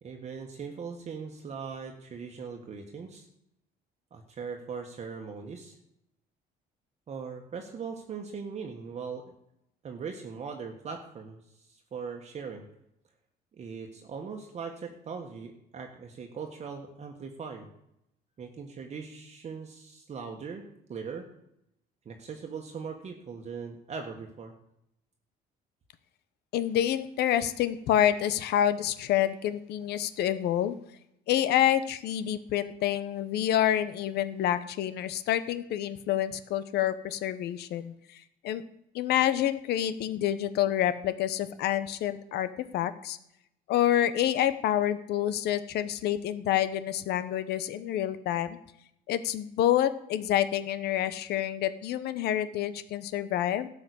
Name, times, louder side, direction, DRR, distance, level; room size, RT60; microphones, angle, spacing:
voice 1, 0.0-3.3 4.1-5.8 7.1-9.2 9.8-12.6 13.5-17.7 18.4-21.3 22.0-24.5, right 5 dB, 40° right, 3 dB, 1.5 m, -40 dB
voice 2, 26.5-30.8 31.3-38.6 38.9-43.2 43.7-48.6 49.1-53.7, left 11 dB, 75° left, 14 dB, 0.9 m, -28 dB
12.5 x 5.7 x 8.3 m, 0.78 s
cardioid pair, 110°, 17 cm